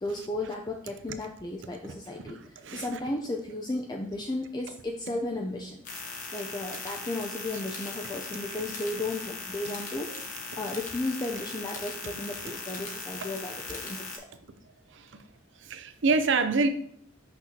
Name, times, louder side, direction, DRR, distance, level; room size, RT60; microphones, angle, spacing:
voice 1, 0.0-5.8 6.3-10.1 10.6-14.3, left 2 dB, 20° left, 0.4 m, -34 dB
voice 2, 2.3-2.9 14.9-15.1 15.6-16.7, right 4 dB, 60° right, 0.6 m, -27 dB
sound 1, 5.8-14.2, left 4 dB, 40° left, 1.0 m, -39 dB
6.1 x 5.8 x 2.8 m
head